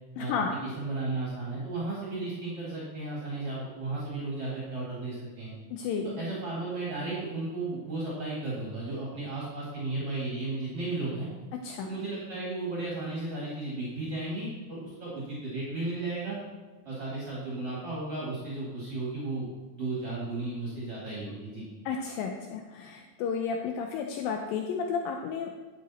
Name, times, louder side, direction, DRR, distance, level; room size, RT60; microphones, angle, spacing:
voice 1, 0.2-0.5 5.7-6.1 11.6-11.9 21.9-25.5, left 6 dB, 80° left, 3 dB, 2.3 m, -32 dB
voice 2, 0.8-5.5 6.2-11.3 11.8-16.4 16.8-19.5 19.7-21.6, right 2 dB, 45° right, -6 dB, 2.7 m, -34 dB
11.5 x 7.7 x 4.2 m, 1.3 s
omnidirectional pair, 4.2 m